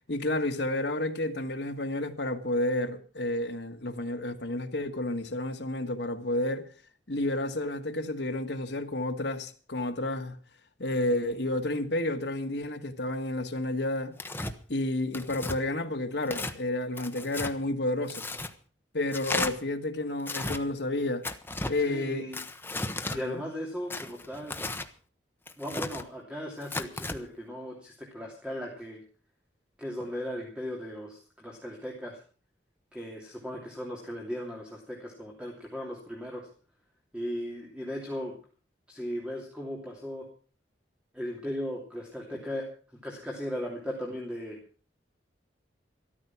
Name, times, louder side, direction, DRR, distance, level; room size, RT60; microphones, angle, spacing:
voice 1, 0.1-6.6 7.1-10.4 10.8-14.1 14.7-18.2 18.9-21.2 21.7-22.3 23.2-23.4, left 1 dB, 65° left, 1.6 m, -30 dB
Tearing, 14.2-14.5 15.1-15.6 16.2-16.6 17.0-17.5 18.1-18.5 19.1-19.5 20.2-20.6 21.2-21.7 22.3-23.2 23.9-24.9 25.5-26.0 26.6-27.2, left 2 dB, 10° left, 1.0 m, -34 dB
voice 2, 21.8-22.4 23.1-24.6 25.6-29.0 29.8-32.2 32.9-36.5 37.1-38.4 38.9-40.2 41.1-42.7 43.0-44.6, equal, 5° right, 2.9 m, -37 dB
13.5 x 13.5 x 6.0 m
head